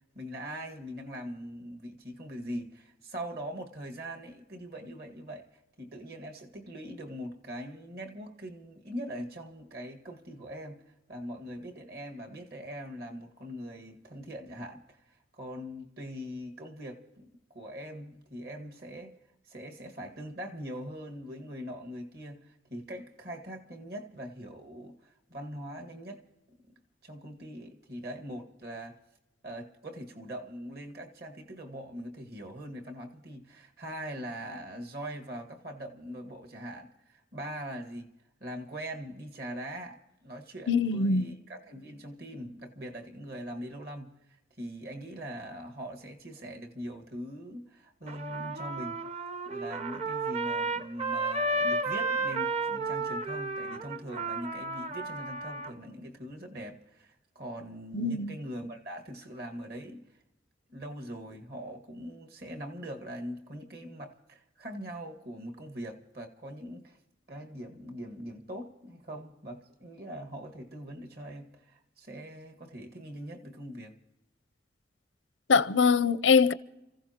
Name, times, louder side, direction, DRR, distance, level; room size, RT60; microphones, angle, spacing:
voice 1, 0.2-5.5 5.8-19.2 19.4-26.2 27.0-29.0 29.4-38.1 38.4-49.0 49.5-60.1 60.7-67.0 67.3-74.0, equal, 55° right, 1.9 m, -42 dB
voice 2, 40.7-41.3 57.9-58.3 75.5-76.5, left 5 dB, 90° left, 0.7 m, -23 dB
Trumpet, 48.1-55.7, right 2 dB, 35° right, 0.8 m, -32 dB
30.0 x 15.5 x 3.0 m
head